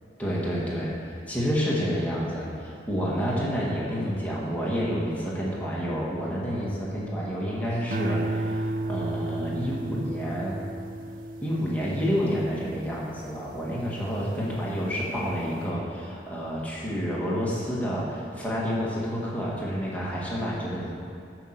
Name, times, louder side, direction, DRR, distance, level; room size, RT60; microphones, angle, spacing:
voice 1, 0.2-0.9 1.3-10.6 11.4-20.9, equal, 10° left, -6 dB, 1.8 m, -29 dB
sound 1, 7.9-14.4 14.9-15.4, right 2 dB, 50° right, 0.4 m, -33 dB
8.7 x 6.5 x 7.4 m, 2.4 s
head